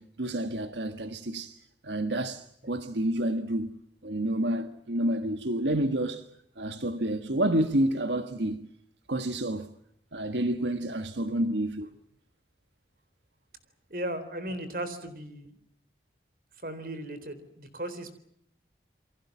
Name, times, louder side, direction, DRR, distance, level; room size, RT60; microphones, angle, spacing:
voice 1, 0.0-6.3 6.6-8.6 9.1-9.7 10.1-11.9, right 1 dB, 90° right, 1.5 m, -29 dB
voice 2, 13.9-15.6 16.6-18.1, right 1 dB, 55° right, 3.9 m, -36 dB
28.5 x 23.5 x 7.3 m
head